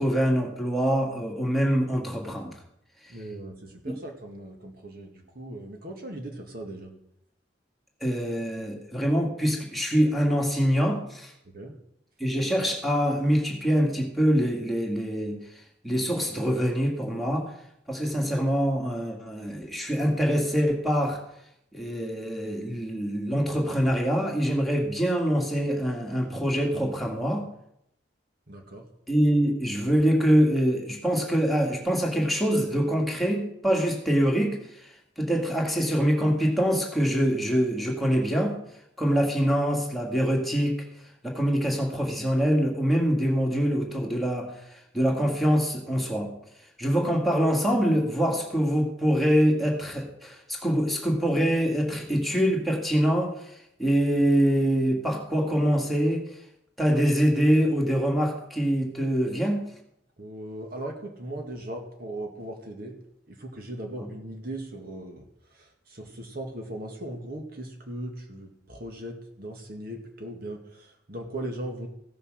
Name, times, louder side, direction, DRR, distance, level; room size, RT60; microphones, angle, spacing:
voice 1, 0.0-2.5 8.0-11.3 12.2-15.4 15.8-17.5 17.9-21.2 21.7-27.5 29.1-38.6 39.0-40.8 41.2-44.5 44.9-46.3 46.8-56.3 56.8-59.6, equal, ahead, -1 dB, 2.2 m, -24 dB
voice 2, 3.1-6.9 11.5-11.7 28.5-28.9 60.2-63.0 63.3-71.9, right 1 dB, 55° right, 2 dB, 1.9 m, -38 dB
15.5 x 6.7 x 6.4 m, 0.74 s
head